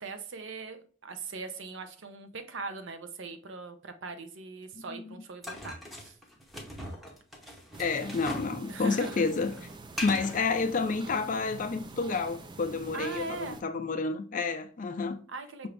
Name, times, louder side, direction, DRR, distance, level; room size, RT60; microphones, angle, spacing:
voice 1, 0.0-6.1 8.7-9.3 12.9-13.6 15.3-15.7, right 3 dB, 60° right, 0.6 m, -40 dB
sound 1, 5.4-8.6 8.8-10.4, left 1 dB, ahead, 0.7 m, -40 dB
sound 2, 7.7-13.6, right 3 dB, 20° right, 0.3 m, -46 dB
voice 2, 7.8-9.5 10.0-15.2, left 4 dB, 40° left, 0.5 m, -30 dB
5.7 x 2.6 x 3.2 m
head